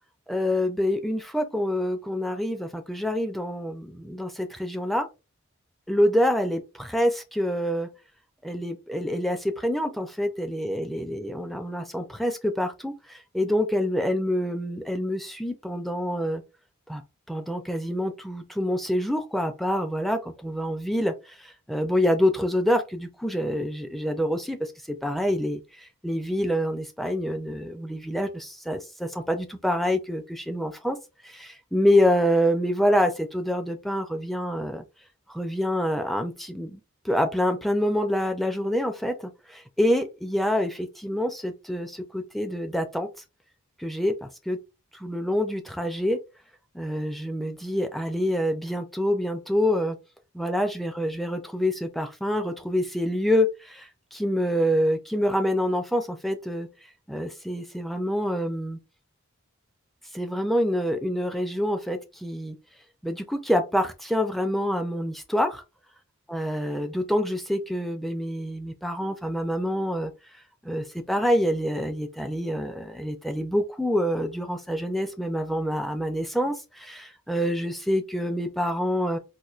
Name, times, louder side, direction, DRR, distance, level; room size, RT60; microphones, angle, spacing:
voice 1, 0.3-5.1 5.9-7.9 8.4-16.4 16.9-17.0 17.3-31.0 31.2-34.8 35.3-43.1 43.8-44.6 44.9-46.2 46.7-50.0 50.3-56.7 57.1-58.8 60.1-62.6 63.0-65.6 66.3-70.1 70.6-79.2, equal, ahead, 0.3 m, -26 dB
4.3 x 2.5 x 2.4 m
head